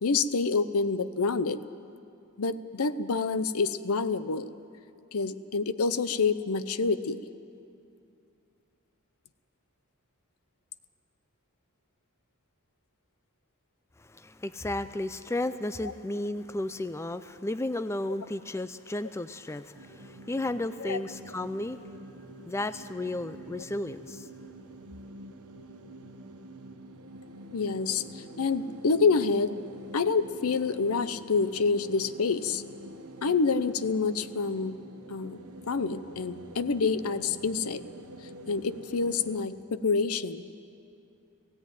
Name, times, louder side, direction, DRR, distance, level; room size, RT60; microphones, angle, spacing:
voice 1, 0.0-1.6 2.4-4.5 5.1-7.2 20.8-21.0 27.5-29.6 29.9-32.6 33.2-34.8 35.1-37.8 38.5-40.5, left 4 dB, 75° left, 14 dB, 0.7 m, -27 dB
voice 2, 14.0-21.8 22.5-24.3, left 1 dB, 10° left, 11 dB, 0.4 m, -33 dB
sound 1, 19.7-39.5, right 1 dB, 80° right, 1.2 m, -46 dB
17.0 x 16.5 x 9.2 m, 2.5 s
head